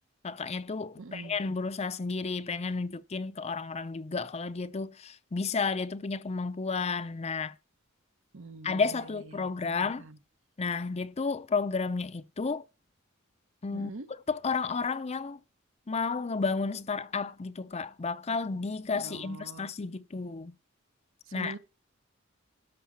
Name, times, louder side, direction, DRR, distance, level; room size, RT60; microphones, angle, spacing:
voice 1, 0.2-7.5 8.6-10.1 10.6-12.6 13.6-13.9 14.3-15.4 15.9-20.5 21.3-21.5, left 4 dB, 30° left, 0.5 m, -32 dB
voice 2, 1.0-1.4 8.3-10.2 13.7-14.1 18.9-19.7 21.3-21.6, right 3 dB, 70° right, 0.9 m, -45 dB
13.0 x 4.9 x 7.3 m
head